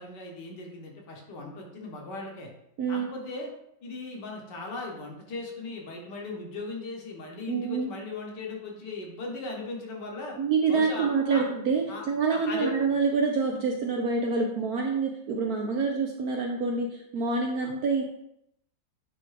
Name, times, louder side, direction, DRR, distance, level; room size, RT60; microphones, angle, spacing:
voice 1, 0.0-2.5 2.9-3.5 3.8-10.4 10.7-11.5 11.9-12.0 12.3-12.7 17.6-17.7, left 3 dB, 60° left, 0 dB, 1.7 m, -38 dB
voice 2, 2.8-3.1 7.5-7.9 10.4-18.0, right 4 dB, 65° right, 1 dB, 0.9 m, -27 dB
9.4 x 3.5 x 3.3 m, 0.79 s
omnidirectional pair, 2.2 m